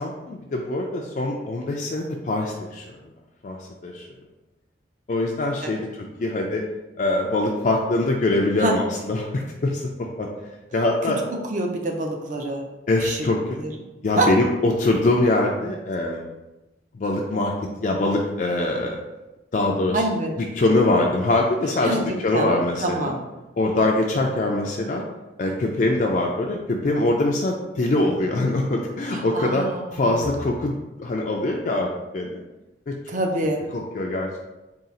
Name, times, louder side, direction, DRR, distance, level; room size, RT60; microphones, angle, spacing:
voice 1, 0.0-2.9 3.4-3.6 3.8-4.1 5.1-5.8 6.2-6.6 7.0-10.3 10.7-11.2 12.9-13.4 14.0-16.3 16.9-17.5 17.8-19.0 19.5-20.0 20.4-23.1 23.6-25.0 25.4-29.6 29.9-32.4 32.9-33.2 33.7-34.3, left 2 dB, 40° left, 0 dB, 0.3 m, -23 dB
voice 2, 11.0-12.7 13.0-13.3 13.6-13.7 14.2-14.3 19.9-20.4 21.8-22.0 22.3-22.5 22.8-23.2 29.1-30.3 33.1-33.6, right 2 dB, 40° right, 2 dB, 0.5 m, -26 dB
3.7 x 2.4 x 4.0 m, 1.0 s
head